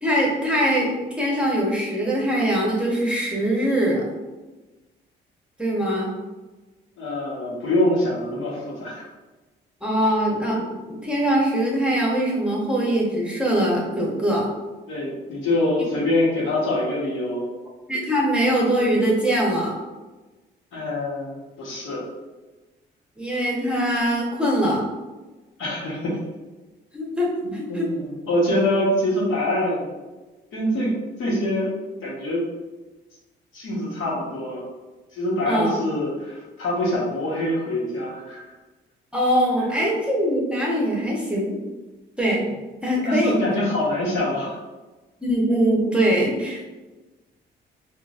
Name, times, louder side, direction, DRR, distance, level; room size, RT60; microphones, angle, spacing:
voice 1, 0.0-4.0 5.6-6.1 9.8-14.4 17.9-19.7 23.2-24.8 26.9-27.9 35.4-35.7 39.1-41.6 42.2-42.5 42.8-43.4 45.2-46.6, equal, 5° right, -4 dB, 0.9 m, -22 dB
voice 2, 7.0-9.1 10.0-10.1 14.9-17.4 20.7-22.0 25.6-26.2 27.4-29.9 30.5-30.9 31.2-31.7 32.0-32.5 33.5-34.6 35.1-38.5 43.0-44.6, left 1 dB, 85° left, -5 dB, 1.1 m, -24 dB
3.8 x 2.5 x 2.4 m, 1.2 s
cardioid pair, 90°, 20 cm